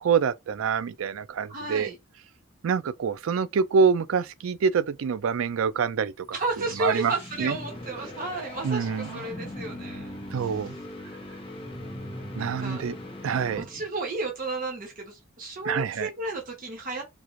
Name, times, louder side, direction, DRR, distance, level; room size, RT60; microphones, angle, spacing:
voice 1, 0.0-1.9 2.6-6.4 6.8-7.6 8.6-9.2 10.3-10.8 12.4-12.9 13.2-13.7 15.7-16.1, right 6 dB, 75° right, 0.4 m, -26 dB
voice 2, 1.5-2.0 6.3-10.7 12.4-12.8 13.6-17.0, right 2 dB, 45° right, 0.9 m, -33 dB
sound 1, 6.2-14.0, left 1 dB, 30° left, 1.1 m, -40 dB
3.7 x 2.4 x 3.0 m
head